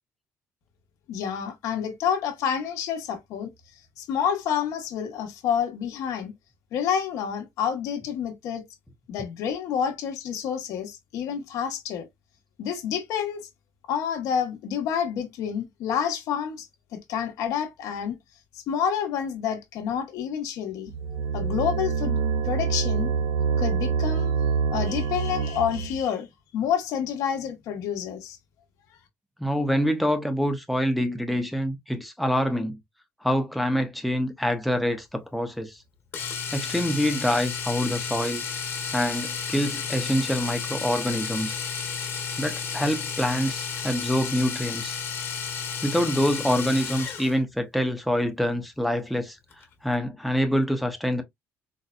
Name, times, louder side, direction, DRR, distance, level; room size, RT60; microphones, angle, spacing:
voice 1, 1.1-3.5 4.0-6.3 6.7-8.6 9.1-12.1 12.6-13.5 13.9-16.7 16.9-18.2 18.5-20.9 21.3-22.2 22.4-23.1 23.6-24.3 24.7-28.4, left 8 dB, 80° left, 1.0 m, -28 dB
sound 1, 20.9-26.0, right 6 dB, 60° right, 0.8 m, -26 dB
voice 2, 29.4-32.8 33.2-35.8 36.5-38.4 38.9-41.6 42.4-45.0 45.8-49.4 49.8-51.2, equal, ahead, 0.5 m, -26 dB
Domestic sounds home sounds, 36.1-47.4 49.5-49.6 49.9-50.0, left 6 dB, 45° left, 1.3 m, -32 dB
4.0 x 2.1 x 2.4 m
cardioid pair, 150°, 6 cm